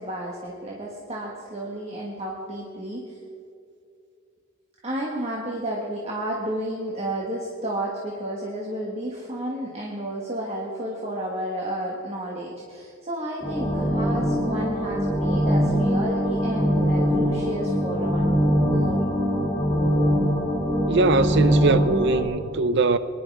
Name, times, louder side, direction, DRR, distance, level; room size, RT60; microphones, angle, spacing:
voice 1, 0.0-3.2 4.8-18.3 18.7-19.0 22.7-22.8, right 1 dB, 30° right, 1.5 m, -31 dB
sound 1, 13.4-22.2, equal, 20° left, 2.7 m, -23 dB
voice 2, 20.9-23.0, right 3 dB, 55° right, 0.6 m, -21 dB
23.0 x 10.5 x 4.8 m
head